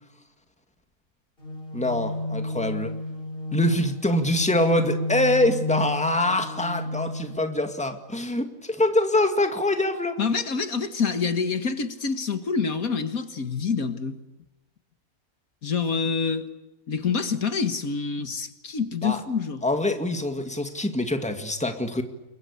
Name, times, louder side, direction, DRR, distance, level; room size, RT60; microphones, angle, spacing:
sound 1, 1.4-7.4, left 1 dB, 35° left, 4.4 m, -32 dB
voice 1, 1.7-2.9 3.5-10.2 19.0-19.2 19.6-22.0, left 1 dB, 5° left, 6 dB, 2.1 m, -24 dB
voice 2, 10.2-14.2 15.6-16.5 16.9-19.6, left 5 dB, 65° left, 9 dB, 2.0 m, -27 dB
29.5 x 23.0 x 8.4 m, 1.0 s
omnidirectional pair, 1.6 m